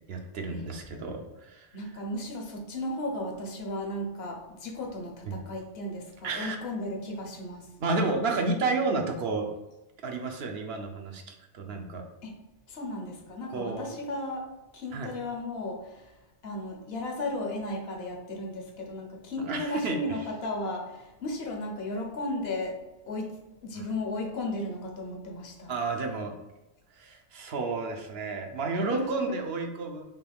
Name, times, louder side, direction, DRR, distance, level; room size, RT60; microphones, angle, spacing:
voice 1, 0.1-1.8 5.3-5.4 6.2-6.6 7.8-9.5 10.0-12.1 13.5-13.9 14.9-15.1 19.5-20.0 25.7-26.3 26.9-30.0, right 3 dB, 70° right, 3 dB, 0.9 m, -31 dB
voice 2, 1.7-7.7 12.2-12.4 12.7-16.1 16.4-22.8 23.1-23.3 23.6-25.7 28.7-29.4, left 1 dB, 70° left, 2 dB, 1.0 m, -35 dB
5.5 x 2.3 x 3.4 m, 0.99 s
omnidirectional pair, 1.1 m